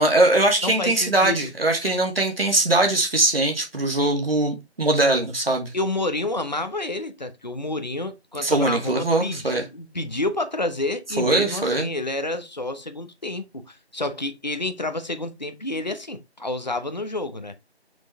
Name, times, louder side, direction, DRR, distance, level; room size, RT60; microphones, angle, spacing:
voice 1, 0.0-5.7 8.4-9.7 11.2-11.9, right 2 dB, 60° right, 2.2 m, -21 dB
voice 2, 0.6-1.5 5.7-17.5, left 2 dB, 40° left, 0.9 m, -29 dB
6.2 x 4.7 x 3.4 m
figure-of-eight pair, 165°, 33 cm